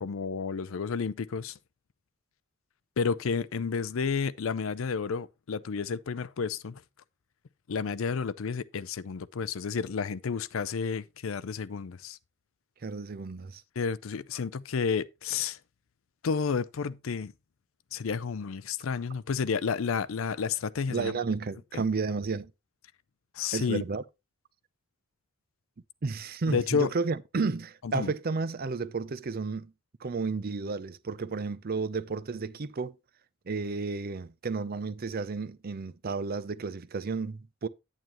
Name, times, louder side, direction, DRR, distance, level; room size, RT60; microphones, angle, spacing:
voice 1, 0.0-1.6 3.0-6.8 7.7-12.2 13.8-15.6 16.2-17.3 17.9-21.1 21.7-21.8 23.3-23.8 26.5-26.9 27.8-28.1, left 5 dB, 80° left, 0.5 m, -31 dB
voice 2, 12.8-13.6 20.9-22.5 23.5-24.0 26.0-29.7 30.0-33.0 33.5-37.7, right 4 dB, 50° right, 0.5 m, -32 dB
9.2 x 9.0 x 3.0 m
head